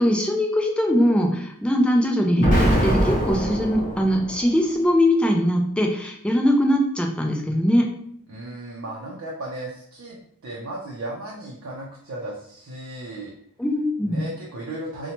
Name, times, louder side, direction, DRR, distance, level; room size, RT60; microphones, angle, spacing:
voice 1, 0.0-7.9 13.6-14.2, equal, 5° left, 1 dB, 0.3 m, -21 dB
Explosion, 2.4-4.5, equal, 35° left, 0.9 m, -22 dB
voice 2, 8.3-13.3 14.0-15.1, right 1 dB, 65° right, -3 dB, 0.5 m, -35 dB
2.8 x 2.1 x 2.8 m, 0.66 s
head